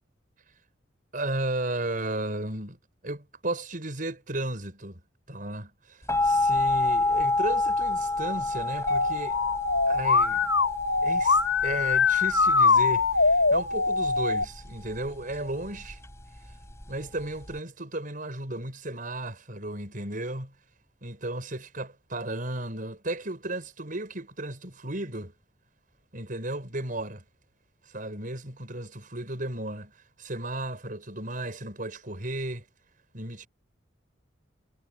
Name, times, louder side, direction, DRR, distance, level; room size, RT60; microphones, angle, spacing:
voice 1, 1.1-2.8 3.0-5.0 5.3-9.4 9.9-10.5 11.0-16.0 16.9-20.5 21.0-25.3 26.1-27.2 27.9-29.9 30.2-32.6 33.1-33.5, right 1 dB, 45° right, 5.7 m, -34 dB
sound 1, 6.1-17.6, left 2 dB, 15° left, 4.9 m, -29 dB
Musical instrument, 8.9-14.4, left 4 dB, 85° left, 4.6 m, -23 dB
head